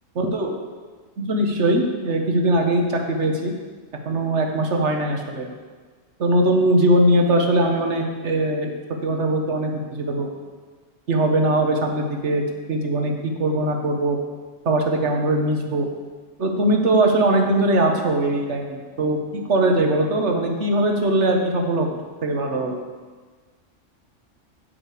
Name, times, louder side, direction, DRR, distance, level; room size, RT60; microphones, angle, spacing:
voice 1, 0.1-0.6 1.2-3.5 4.0-5.5 6.2-8.7 9.0-10.3 11.1-12.4 12.7-14.2 14.6-15.9 16.4-22.8, right 1 dB, 65° right, 3 dB, 1.5 m, -21 dB
9.0 x 6.0 x 8.4 m, 1.4 s
omnidirectional pair, 1.3 m